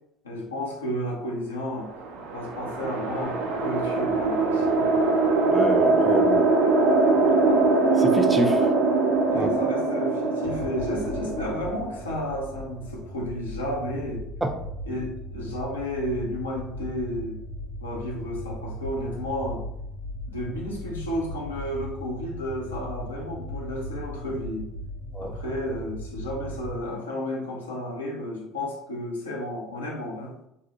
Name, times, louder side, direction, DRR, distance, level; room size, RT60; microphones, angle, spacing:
voice 1, 0.2-1.9 2.3-4.9 9.3-14.2 14.9-17.4 17.8-19.6 20.2-24.7 25.2-30.3, left 1 dB, 90° left, -2 dB, 0.6 m, -32 dB
sound 1, 1.9-12.4, right 3 dB, 70° right, 0.4 m, -22 dB
voice 2, 5.5-6.5 8.0-8.7 9.3-9.5 14.4-14.5 25.1-25.3, right 1 dB, 10° right, 4 dB, 0.4 m, -27 dB
sound 2, 10.4-26.8, equal, 70° left, 1.0 m, -37 dB
2.7 x 2.0 x 2.7 m, 0.80 s
hypercardioid pair, 65°, 0 cm